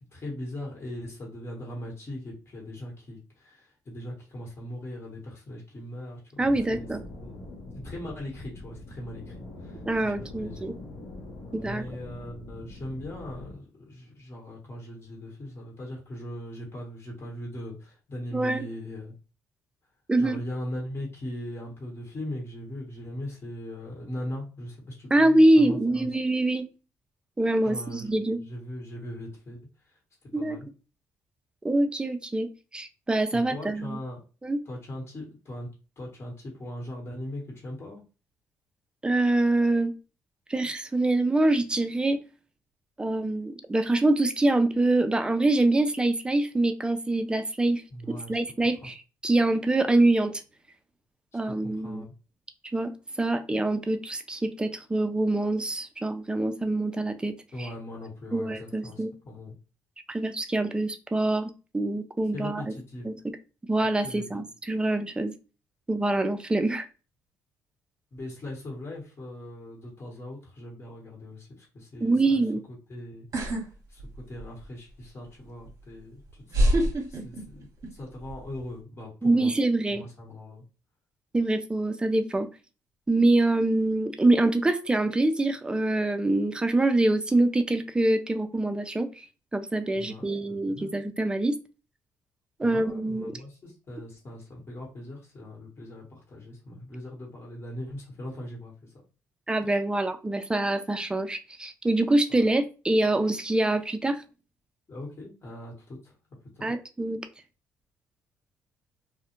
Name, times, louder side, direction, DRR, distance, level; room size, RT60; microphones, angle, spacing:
voice 1, 0.0-6.9 7.2-7.4 7.8-9.8 10.2-10.6 11.6-19.1 20.2-26.1 27.6-28.1 28.4-30.7 33.3-34.2 34.6-35.7 36.0-38.0 47.9-48.4 48.8-48.9 51.5-52.1 57.5-59.5 62.3-63.0 64.0-64.3 68.1-73.3 73.9-79.5 79.9-80.6 89.9-90.9 92.6-99.0 102.3-102.5 104.9-106.1 106.5-106.7, left 1 dB, 35° left, -2 dB, 1.1 m, -40 dB
sound 1, 6.4-13.6, left 2 dB, 75° left, 0.7 m, -43 dB
voice 2, 6.4-7.0 9.9-10.7 11.5-11.8 18.3-18.6 20.1-20.4 25.1-26.6 27.4-28.4 30.3-30.6 31.6-34.0 34.4-34.6 39.0-39.9 40.5-42.2 43.0-47.8 48.1-48.9 49.2-50.3 51.3-52.0 52.7-52.9 53.2-57.3 58.3-59.1 60.1-62.7 63.0-63.1 63.7-65.3 65.9-66.9 72.0-72.6 79.2-80.0 81.3-82.5 83.1-89.1 89.5-91.5 92.6-93.3 99.5-104.2 106.6-107.2, right 2 dB, 15° right, 8 dB, 0.4 m, -25 dB
sound 2, 73.3-73.6 74.0-74.6 75.7-75.8 76.5-77.9 78.2-78.6, equal, 50° right, 0.8 m, -25 dB
2.3 x 2.1 x 2.9 m, 0.33 s
cardioid pair, 80°, 7 cm